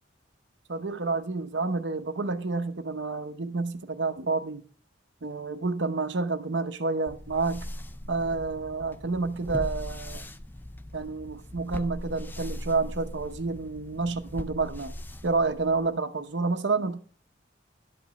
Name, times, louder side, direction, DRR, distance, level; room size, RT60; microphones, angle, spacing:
voice 1, 0.7-4.6 5.2-7.7 8.1-10.2 10.9-14.9 15.2-17.0, right 3 dB, 65° right, 0.8 m, -29 dB
sound 1, 7.1-16.0, left 1 dB, 10° left, 0.4 m, -40 dB
11.5 x 5.0 x 6.8 m
head